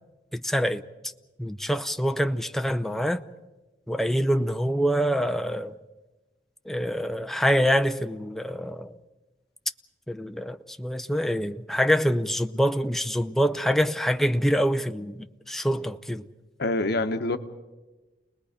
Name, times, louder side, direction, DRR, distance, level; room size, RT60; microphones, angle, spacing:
voice 1, 0.3-0.8 1.4-3.2 3.9-5.8 6.7-9.0 10.1-16.3, equal, ahead, 0.6 m, -25 dB
voice 2, 16.6-17.4, left 2 dB, 60° left, 1.1 m, -25 dB
29.5 x 20.5 x 5.1 m
head